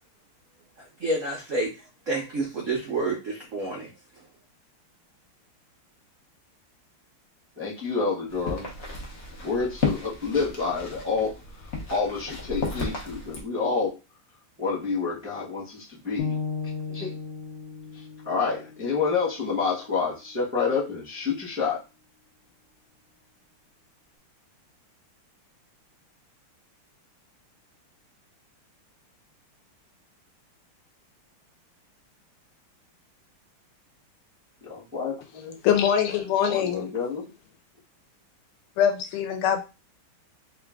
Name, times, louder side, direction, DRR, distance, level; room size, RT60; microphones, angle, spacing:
voice 1, 0.8-1.7 2.1-3.9, right 2 dB, 70° right, -2 dB, 0.7 m, -29 dB
voice 2, 7.6-8.7 9.4-14.0 14.6-16.4 16.9-17.1 17.9-21.8 34.6-35.6 36.5-37.3, left 5 dB, 15° right, -6 dB, 0.4 m, -28 dB
sound 1, 8.3-13.4, left 4 dB, 50° left, 0.8 m, -33 dB
sound 2, 16.2-20.3, left 5 dB, 75° left, 1.4 m, -36 dB
voice 3, 35.6-36.9 38.8-39.6, left 8 dB, 90° left, 7 dB, 1.6 m, -23 dB
3.7 x 2.4 x 3.4 m, 0.28 s
omnidirectional pair, 2.4 m